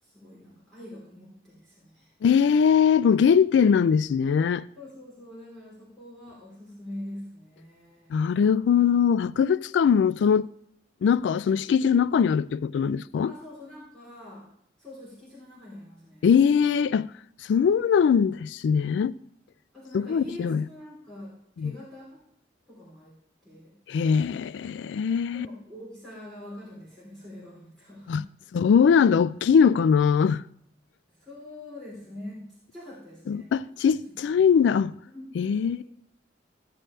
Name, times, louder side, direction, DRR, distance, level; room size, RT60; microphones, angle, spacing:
voice 1, 0.0-2.1 4.8-8.3 13.2-14.5 14.8-16.3 19.7-22.2 22.7-23.1 23.4-23.7 25.3-28.4 31.1-32.4 32.7-33.5 33.8-34.0 34.2-34.4 35.1-35.8, left 1 dB, 5° left, 3.6 m, -44 dB
voice 2, 2.2-4.7 8.1-10.5 11.0-13.3 16.2-17.1 17.5-19.1 19.9-20.6 21.6-21.7 23.9-25.5 28.1-28.2 28.5-30.4 33.3-34.9 35.4-35.8, left 7 dB, 80° left, 0.3 m, -21 dB
15.0 x 7.7 x 3.3 m
head